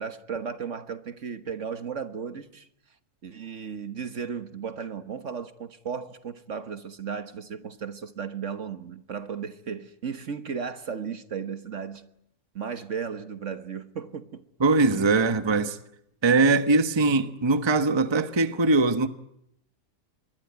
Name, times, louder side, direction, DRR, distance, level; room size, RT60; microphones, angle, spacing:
voice 1, 0.0-2.7 3.2-12.0 12.5-14.4, right 6 dB, 50° right, 1.6 m, -35 dB
voice 2, 14.6-15.8 16.2-19.1, right 3 dB, 20° right, 1.0 m, -21 dB
26.5 x 22.5 x 9.5 m
omnidirectional pair, 1.7 m